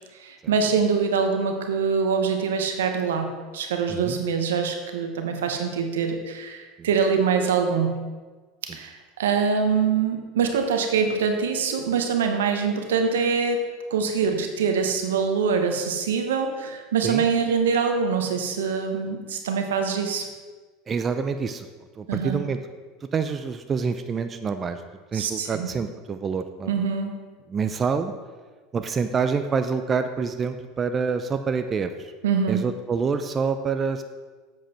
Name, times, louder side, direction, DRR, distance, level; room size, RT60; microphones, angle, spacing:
voice 1, 0.2-8.1 8.7-13.7 13.9-20.3 22.1-22.4 25.1-25.7 26.7-27.2 32.2-32.6, right 6 dB, 85° right, 5 dB, 1.1 m, -24 dB
voice 2, 20.9-21.7 22.0-22.6 23.1-24.8 25.1-26.8 27.5-28.1 28.7-32.1 32.5-34.0, right 5 dB, 30° right, 8 dB, 0.5 m, -27 dB
7.8 x 7.6 x 4.4 m, 1.4 s
hypercardioid pair, 90°, 0 cm